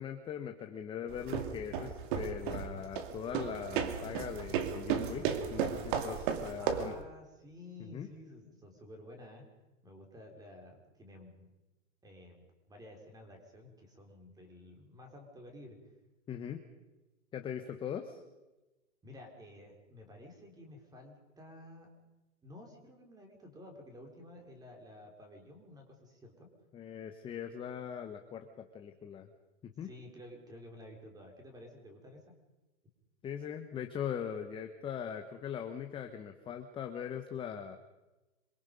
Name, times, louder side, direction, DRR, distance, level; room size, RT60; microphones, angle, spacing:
voice 1, 0.0-6.9 7.8-8.1 16.3-16.6 17.3-18.2 26.7-29.3 29.8-29.9 33.2-37.8, left 8 dB, 15° left, 6 dB, 1.1 m, -40 dB
sound 1, 1.1-7.0, right 8 dB, 40° right, 2.4 m, -35 dB
voice 2, 6.6-9.5 9.8-11.5 12.0-15.8 19.0-21.9 22.4-26.5 29.8-32.3, left 1 dB, 10° right, 3 dB, 4.2 m, -52 dB
26.5 x 23.0 x 5.4 m, 1.1 s
hypercardioid pair, 150°, 38 cm